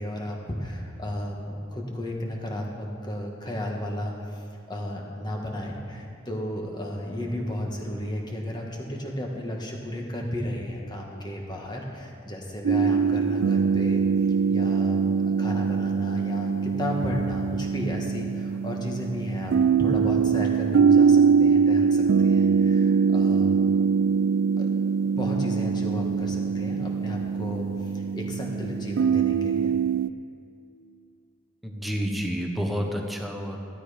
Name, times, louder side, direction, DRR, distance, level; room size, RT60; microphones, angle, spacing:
voice 1, 0.0-14.0 14.5-23.8 24.6-24.7 25.2-29.7, equal, 20° left, 0 dB, 1.7 m, -33 dB
sound 1, 12.6-30.1, right 6 dB, 65° right, 0.3 m, -23 dB
voice 2, 31.6-33.6, equal, ahead, 1 dB, 1.1 m, -29 dB
13.5 x 12.5 x 5.1 m, 2.5 s
head